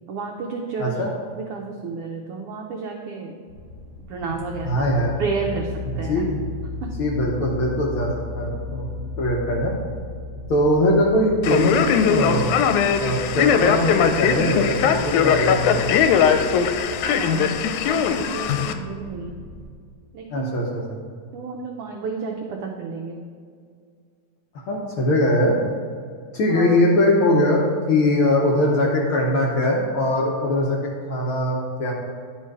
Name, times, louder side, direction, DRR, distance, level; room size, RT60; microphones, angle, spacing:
voice 1, 0.1-3.3 4.1-4.8 5.2-5.7 6.0-6.2 6.8-6.9 17.0-19.4 20.1-20.5 21.3-23.2 26.5-26.8, right 5 dB, 90° right, 2 dB, 1.2 m, -31 dB
sound 1, 3.5-19.6, left 3 dB, 35° left, 2.4 m, -36 dB
voice 2, 4.6-5.1 5.9-6.4 7.0-8.9 9.2-9.7 10.5-12.5 13.0-16.0 20.3-21.0 24.7-25.5 26.3-31.9, left 1 dB, 65° left, -2 dB, 1.3 m, -21 dB
Male speech man speaking, 11.4-18.7, left 7 dB, 90° left, 2.0 m, -20 dB
10.0 x 4.4 x 4.7 m, 2.1 s
omnidirectional pair, 3.3 m